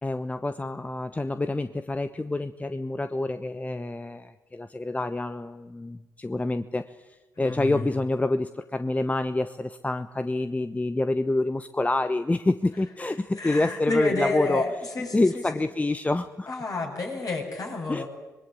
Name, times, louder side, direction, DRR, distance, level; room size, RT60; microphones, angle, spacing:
voice 1, 0.0-14.6 15.1-16.5 17.9-18.0, left 2 dB, 20° left, 11 dB, 1.0 m, -27 dB
voice 2, 7.4-7.8 13.4-15.6 16.5-18.1, left 2 dB, 50° left, 0 dB, 7.5 m, -29 dB
25.5 x 21.0 x 8.6 m, 1.1 s
hypercardioid pair, 40°, 8 cm